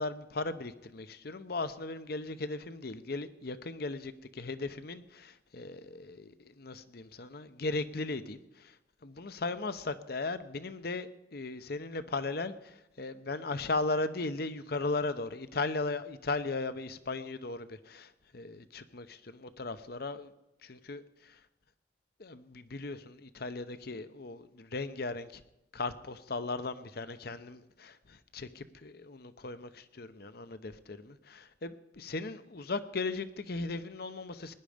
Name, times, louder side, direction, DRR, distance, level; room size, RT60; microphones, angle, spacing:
voice 1, 0.0-8.8 9.0-20.3 20.6-21.4 22.2-25.4 25.7-34.5, left 3 dB, 55° left, 12 dB, 0.8 m, -37 dB
19.5 x 10.5 x 5.1 m, 0.91 s
head